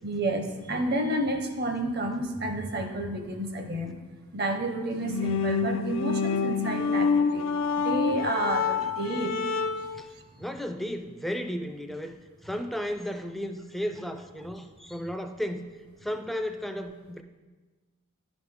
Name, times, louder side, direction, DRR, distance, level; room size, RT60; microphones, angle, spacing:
voice 1, 0.0-4.0 4.3-9.5, right 1 dB, 50° right, 5 dB, 0.8 m, -30 dB
sound 1, 5.0-10.0, left 5 dB, 65° left, 0.4 m, -27 dB
voice 2, 10.4-15.7 16.0-17.2, equal, ahead, 7 dB, 0.4 m, -34 dB
10.5 x 5.1 x 3.6 m, 1.3 s
head